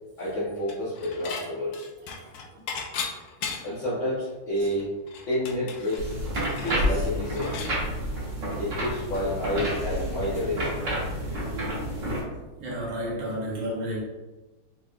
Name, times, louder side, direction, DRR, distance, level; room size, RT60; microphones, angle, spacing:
voice 1, 0.2-1.9 2.5-2.6 3.6-4.8 5.3-6.1 6.6-7.5 8.6-10.7, left 1 dB, 45° left, -10 dB, 1.2 m, -29 dB
Dishes pots and pans / Chink clink, 0.7-1.5 1.7-3.9 4.3-4.4 4.6-7.8, left 5 dB, 80° left, 0.8 m, -36 dB
sound 1, 6.0-12.2, equal, 45° right, 1.4 m, -29 dB
voice 2, 12.6-14.0, equal, 70° right, -3 dB, 1.7 m, -32 dB
4.1 x 3.9 x 2.4 m, 1.1 s
omnidirectional pair, 2.2 m